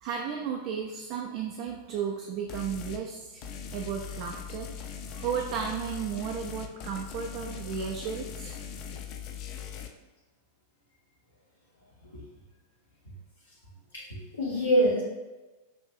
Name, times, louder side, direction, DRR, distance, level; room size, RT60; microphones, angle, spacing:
voice 1, 0.0-3.4 3.7-4.7 5.1-8.5, right 7 dB, 45° right, 1 dB, 0.4 m, -34 dB
sound 1, 2.5-3.0 3.4-9.9, left 7 dB, 40° left, 0.4 m, -40 dB
voice 2, 13.9-15.0, equal, 70° left, -6 dB, 0.8 m, -25 dB
5.5 x 2.6 x 2.4 m, 1.2 s
figure-of-eight pair, 90°, 0 cm